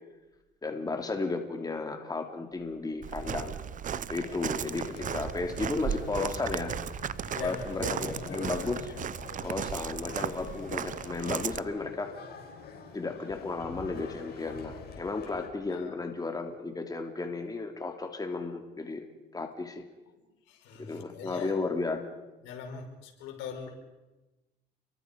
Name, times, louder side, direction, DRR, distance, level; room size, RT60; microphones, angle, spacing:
voice 1, 0.6-3.6 4.1-6.7 7.4-8.8 9.4-12.2 12.9-19.0 19.3-19.8 20.9-22.0, left 3 dB, 20° left, 4 dB, 2.9 m, -34 dB
Walk footsteps, 3.0-11.6, right 9 dB, 45° right, 0.8 m, -36 dB
sound 1, 4.1-15.5, left 5 dB, 55° left, 6.4 m, -45 dB
voice 2, 7.3-9.0 15.7-15.9 20.5-21.5 22.4-23.7, left 6 dB, 90° left, 3 dB, 5.2 m, -42 dB
29.5 x 23.0 x 5.3 m, 1.1 s
cardioid pair, 95°, 19 cm